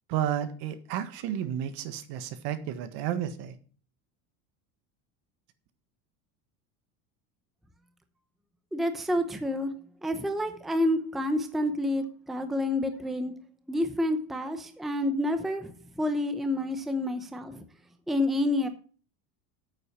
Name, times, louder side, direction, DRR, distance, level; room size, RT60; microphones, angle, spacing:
voice 1, 0.1-3.5, right 10 dB, 65° right, 11 dB, 1.6 m, -32 dB
voice 2, 8.7-9.7 10.0-13.3 13.7-17.6 18.1-18.7, left 1 dB, ahead, 8 dB, 0.7 m, -29 dB
9.1 x 8.2 x 5.8 m, 0.41 s
cardioid pair, 155°, 43 cm